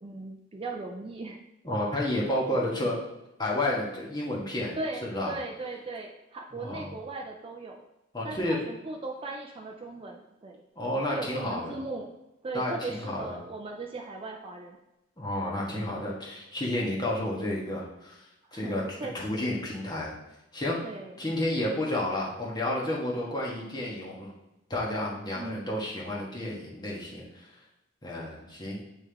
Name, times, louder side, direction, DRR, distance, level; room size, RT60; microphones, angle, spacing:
voice 1, 0.0-1.4 4.8-7.8 8.2-10.6 11.1-12.1 12.4-14.8 18.5-19.6 20.8-21.1 25.3-25.6, right 3 dB, 25° right, 1 dB, 0.4 m, -38 dB
voice 2, 1.6-3.0 3.4-4.7 5.0-5.3 6.5-6.8 8.1-8.6 10.7-11.7 12.5-13.4 15.2-18.3 18.5-18.8 19.1-20.1 20.5-20.8 21.2-24.3 24.7-27.5 28.0-28.8, left 1 dB, 20° left, -4 dB, 1.3 m, -31 dB
8.3 x 3.5 x 3.4 m, 0.93 s
head